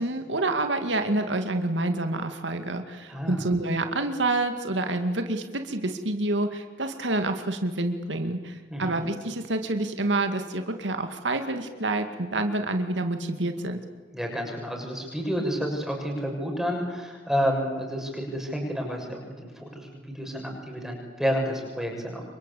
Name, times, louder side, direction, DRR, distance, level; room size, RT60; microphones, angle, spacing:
voice 1, 0.0-13.8, right 2 dB, 90° right, 7 dB, 2.3 m, -28 dB
voice 2, 3.1-3.5 8.7-9.0 14.1-22.2, equal, ahead, 1 dB, 6.7 m, -30 dB
28.0 x 24.5 x 8.5 m, 1.4 s
head